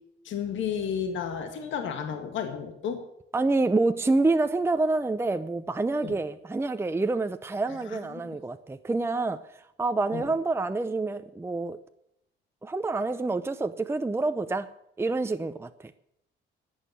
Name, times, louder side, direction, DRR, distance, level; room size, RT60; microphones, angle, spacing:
voice 1, 0.3-3.1 6.0-6.2 7.9-8.4 10.1-10.3, left 7 dB, 75° left, 1.7 m, -32 dB
voice 2, 3.3-9.4 9.8-11.8 12.6-14.7 15.0-15.7, right 3 dB, 10° right, 0.6 m, -27 dB
11.0 x 8.9 x 9.3 m
cardioid pair, 90°, 20 cm